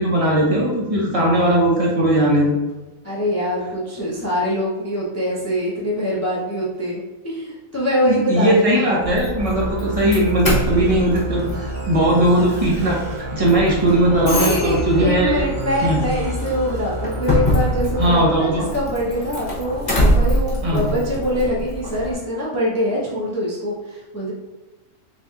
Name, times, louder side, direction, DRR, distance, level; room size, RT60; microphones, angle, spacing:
voice 1, 0.0-2.5 8.0-13.0 13.3-15.4 15.8-16.0 18.0-18.6 20.6-20.8, right 1 dB, 30° right, -3 dB, 0.8 m, -18 dB
voice 2, 3.0-8.9 14.3-24.3, equal, 20° left, -6 dB, 0.5 m, -24 dB
Doorbell, 9.0-22.1, equal, 35° left, 1.0 m, -25 dB
sound 1, 9.3-18.2, right 1 dB, 90° right, 0.4 m, -29 dB
4.0 x 3.4 x 2.4 m, 1.1 s
omnidirectional pair, 1.4 m